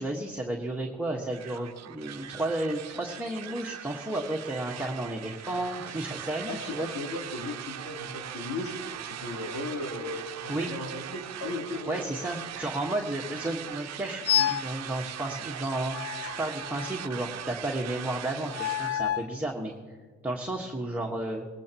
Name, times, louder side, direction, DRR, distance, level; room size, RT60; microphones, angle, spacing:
voice 1, 0.0-6.9 10.5-10.7 11.9-19.7 20.2-21.4, right 1 dB, 5° right, -1 dB, 1.4 m, -32 dB
sound 1, 1.3-19.0, right 10 dB, 60° right, 0.8 m, -40 dB
voice 2, 6.4-8.8 9.0-12.0, left 2 dB, 70° left, 0 dB, 3.5 m, -36 dB
sound 2, 14.3-14.8 15.9-17.2 18.5-19.4, left 10 dB, 50° left, 0.5 m, -29 dB
19.0 x 16.5 x 3.0 m, 1.5 s
cardioid pair, 90°, 30 cm